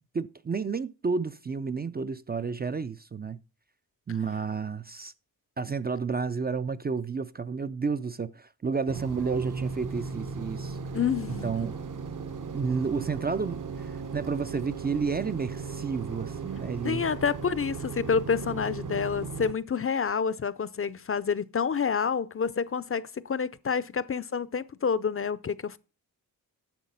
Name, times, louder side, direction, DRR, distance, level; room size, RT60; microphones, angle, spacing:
voice 1, 0.1-3.4 4.1-5.1 5.6-10.8 11.4-11.8 12.5-17.1, right 5 dB, 25° right, 0.4 m, -31 dB
sound 1, 8.9-19.5, right 5 dB, 55° right, 1.0 m, -37 dB
voice 2, 10.9-11.5 16.8-25.8, left 6 dB, 35° left, 0.5 m, -28 dB
10.5 x 6.6 x 5.4 m
wide cardioid pair, 115°, 37 cm